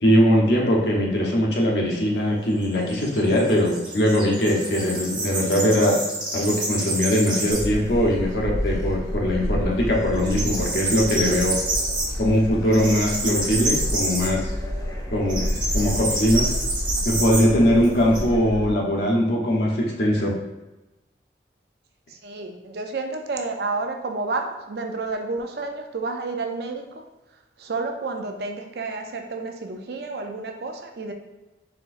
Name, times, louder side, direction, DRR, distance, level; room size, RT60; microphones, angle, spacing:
voice 1, 0.0-6.0 6.3-11.6 12.2-14.5 15.1-15.5 15.7-16.4 17.0-20.4, equal, 70° left, -3 dB, 0.9 m, -21 dB
sound 1, 1.9-7.8 8.2-8.3 8.7-9.5 9.7-18.2, right 2 dB, 25° right, 1.1 m, -29 dB
Gull seagull, 7.5-18.7, equal, 20° left, 0.3 m, -30 dB
voice 2, 22.1-27.1 27.6-31.1, right 3 dB, 65° right, 4 dB, 0.5 m, -30 dB
4.4 x 3.6 x 2.5 m, 1.0 s
head